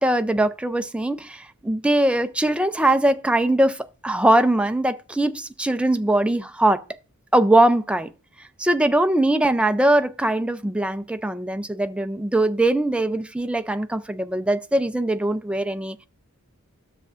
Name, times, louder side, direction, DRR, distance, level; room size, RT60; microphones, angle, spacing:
voice 1, 0.0-6.8 7.3-8.1 8.6-16.0, right 1 dB, 5° right, 0.4 m, -21 dB
12.5 x 6.7 x 2.5 m
head